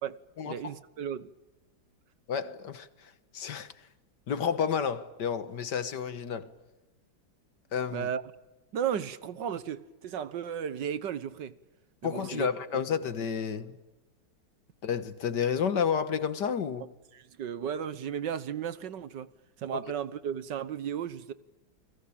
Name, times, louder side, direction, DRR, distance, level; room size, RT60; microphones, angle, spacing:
voice 1, 0.0-1.3 7.9-8.2 8.7-11.6 12.0-12.5 17.1-19.3 19.6-21.3, right 8 dB, 65° right, 1.7 m, -34 dB
voice 2, 2.3-3.7 4.3-6.5 7.7-8.1 12.0-13.8 14.8-16.9, left 7 dB, 65° left, 1.9 m, -31 dB
30.0 x 21.5 x 8.8 m
omnidirectional pair, 2.1 m